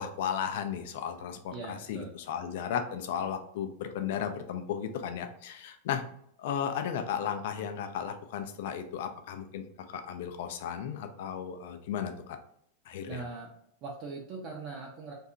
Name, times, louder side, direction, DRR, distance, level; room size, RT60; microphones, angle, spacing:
voice 1, 0.0-6.0 6.4-12.4 12.9-13.2, left 8 dB, 55° left, 7 dB, 0.3 m, -35 dB
voice 2, 1.5-2.1 13.1-13.5 13.8-15.1, right 4 dB, 40° right, -2 dB, 0.5 m, -40 dB
2.7 x 2.3 x 2.5 m, 0.69 s
figure-of-eight pair, 90°, 0 cm